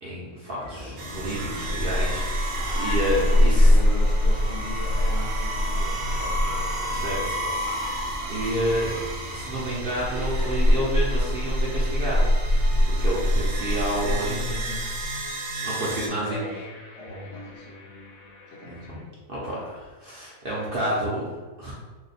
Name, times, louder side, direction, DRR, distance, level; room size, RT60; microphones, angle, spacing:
voice 1, 0.0-2.3 2.7-3.7 6.9-7.4 8.3-8.9 9.3-12.2 12.8-14.4 15.6-16.4 18.9-19.0 19.3-21.7, right 1 dB, 50° right, -6 dB, 0.7 m, -29 dB
sound 1, 0.6-10.8, equal, 30° right, 0.4 m, -41 dB
sound 2, 0.7-19.0, left 1 dB, 85° left, 1.1 m, -46 dB
sound 3, 1.0-16.1, equal, 75° right, 1.0 m, -24 dB
voice 2, 3.0-7.6 14.0-14.9 15.8-16.6 17.0-17.7 18.5-18.9, left 2 dB, 60° left, -4 dB, 0.9 m, -39 dB
2.8 x 2.1 x 4.0 m, 1.3 s
omnidirectional pair, 1.4 m